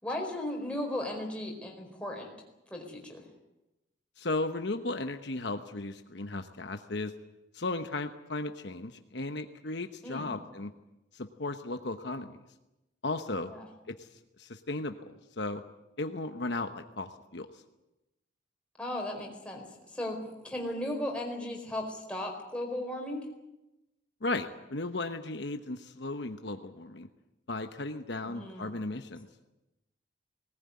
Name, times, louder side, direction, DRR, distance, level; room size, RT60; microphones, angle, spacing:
voice 1, 0.0-2.3 2.7-3.2 10.0-10.3 13.5-13.6 18.8-19.7 19.9-23.2 28.2-28.7, left 1 dB, 5° left, 0 dB, 4.5 m, -36 dB
voice 2, 4.2-7.1 7.5-10.7 11.1-12.4 13.0-13.5 14.0-14.1 14.4-15.6 16.0-17.6 24.2-27.1 27.5-29.3, left 2 dB, 60° left, 7 dB, 1.1 m, -35 dB
19.0 x 19.0 x 9.7 m, 0.96 s
head